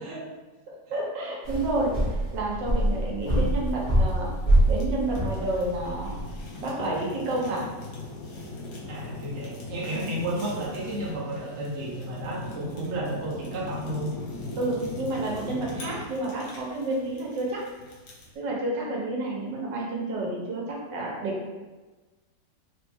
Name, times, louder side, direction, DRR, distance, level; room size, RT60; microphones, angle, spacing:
voice 1, 0.7-4.3 4.7-6.1 6.6-7.7 9.9-10.1 14.6-17.6 18.3-21.5, right 2 dB, 85° right, -3 dB, 1.6 m, -30 dB
sound 1, 1.4-6.4, right 1 dB, 25° left, 1.6 m, -25 dB
Fire, 3.2-18.4, left 2 dB, 75° left, 1.6 m, -40 dB
voice 2, 8.8-14.1, right 1 dB, 45° right, -5 dB, 1.1 m, -32 dB
4.0 x 3.1 x 3.4 m, 1.2 s
omnidirectional pair, 1.9 m